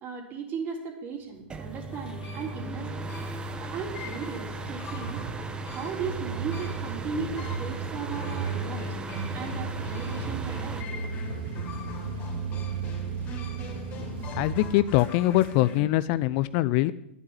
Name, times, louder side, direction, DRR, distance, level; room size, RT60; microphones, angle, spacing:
voice 1, 0.0-3.1 3.6-5.2 5.7-8.9 9.3-10.9, right 5 dB, 35° right, 2 dB, 3.7 m, -36 dB
sound 1, 1.3-15.7, right 5 dB, 60° right, 3.1 m, -36 dB
sound 2, 1.5-10.8, right 2 dB, 15° right, 1.1 m, -37 dB
sound 3, 1.9-15.8, left 3 dB, 30° left, 3.6 m, -44 dB
voice 2, 14.3-16.9, left 16 dB, 45° left, 16 dB, 0.5 m, -23 dB
11.0 x 9.6 x 9.8 m, 0.84 s
hypercardioid pair, 120°, 6 cm